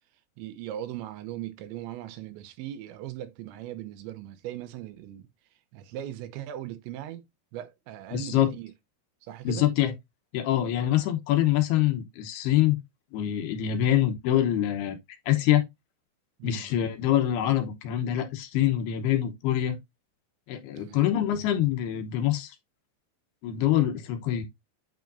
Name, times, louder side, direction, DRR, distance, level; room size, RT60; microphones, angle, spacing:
voice 1, 0.4-5.3 5.7-7.2 7.5-8.7 9.2-9.7 16.4-16.7 20.8-21.1 23.5-23.7, right 12 dB, 80° right, 2.9 m, -39 dB
voice 2, 8.1-8.5 9.4-9.9 10.3-12.8 13.1-15.0 15.3-15.6 16.4-19.8 20.5-22.6 23.4-24.4, left 12 dB, 75° left, 2.5 m, -25 dB
9.3 x 5.0 x 2.6 m
omnidirectional pair, 5.6 m